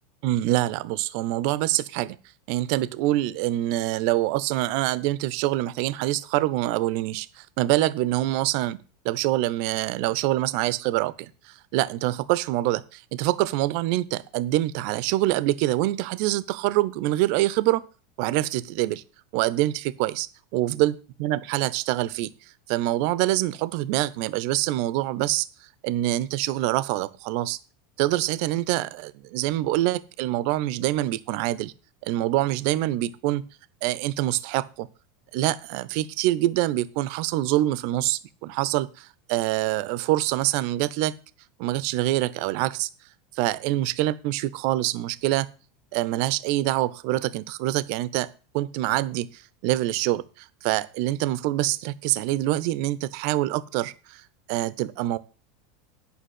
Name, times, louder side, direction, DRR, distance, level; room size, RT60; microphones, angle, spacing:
voice 1, 0.2-2.2 2.5-17.8 18.2-19.0 19.3-20.3 20.5-22.3 22.7-25.5 25.8-27.6 28.0-31.7 32.0-33.4 33.8-34.9 35.3-41.1 41.6-42.9 43.4-45.5 45.9-48.3 48.5-54.2 54.5-55.2, right 16 dB, 50° right, 17 dB, 0.7 m, -25 dB
10.0 x 5.6 x 8.0 m, 0.35 s
figure-of-eight pair, 80°, 0 cm